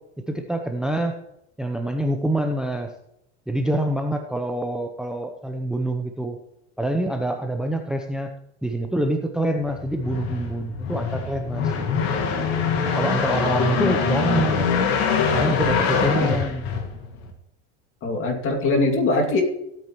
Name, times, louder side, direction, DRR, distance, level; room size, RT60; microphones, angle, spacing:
voice 1, 0.3-1.2 1.6-2.9 3.5-6.4 6.8-8.3 8.6-11.7 13.0-14.8 15.3-16.7, right 1 dB, ahead, 5 dB, 0.7 m, -26 dB
sound 1, 9.7-17.3, left 6 dB, 75° left, 2.2 m, -24 dB
voice 2, 13.6-14.0 16.2-16.3 18.0-19.4, left 2 dB, 40° left, 2 dB, 2.5 m, -22 dB
16.5 x 8.9 x 3.1 m, 0.81 s
supercardioid pair, 120°, 32 cm